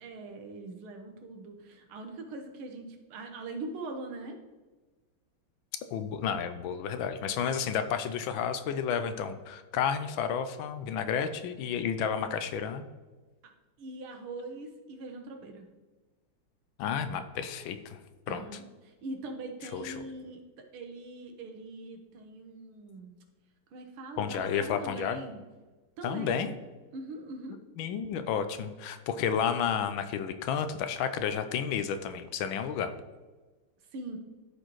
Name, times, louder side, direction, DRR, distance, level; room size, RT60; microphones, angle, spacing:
voice 1, 0.0-4.4 13.8-15.7 18.3-20.4 20.7-23.2 23.7-25.4 26.0-26.4 26.9-27.6 33.9-34.2, right 2 dB, 90° right, 4 dB, 1.9 m, -42 dB
voice 2, 5.9-12.8 16.8-18.0 18.3-18.4 19.7-20.0 24.2-25.2 26.0-26.5 27.8-32.9, left 7 dB, 75° left, 9 dB, 1.3 m, -31 dB
12.5 x 4.3 x 3.1 m, 1.3 s
omnidirectional pair, 2.3 m